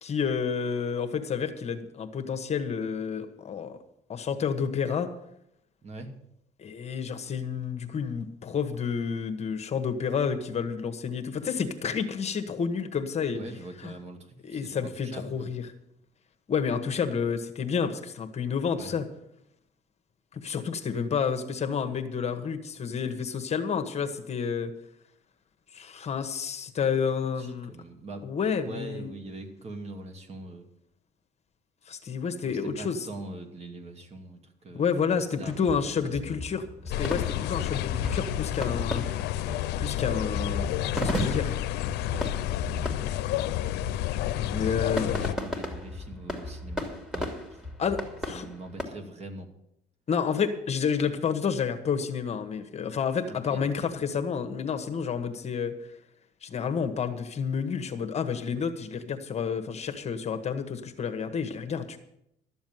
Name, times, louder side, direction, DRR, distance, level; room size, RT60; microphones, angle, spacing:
voice 1, 0.0-3.8 4.1-5.1 6.6-13.4 13.8-13.9 14.4-15.6 16.5-19.1 20.3-24.7 25.7-27.7 28.2-29.1 31.9-33.1 34.7-39.1 39.8-41.5 43.2-43.3 44.4-45.1 47.8-48.5 50.1-55.9 56.4-62.0, left 6 dB, 40° left, 7 dB, 1.3 m, -30 dB
voice 2, 5.8-6.1 13.3-15.5 18.7-18.9 27.4-28.3 28.6-30.6 32.4-35.8 36.0-36.4 42.1-42.5 44.4-47.7 48.3-49.5 53.3-53.6, right 2 dB, 40° right, 5 dB, 2.3 m, -42 dB
sound 1, 35.5-48.8, equal, 5° right, 2.4 m, -36 dB
sound 2, 36.9-45.3, left 13 dB, 80° left, 0.6 m, -30 dB
12.5 x 7.2 x 9.3 m, 0.79 s
cardioid pair, 110°, 17 cm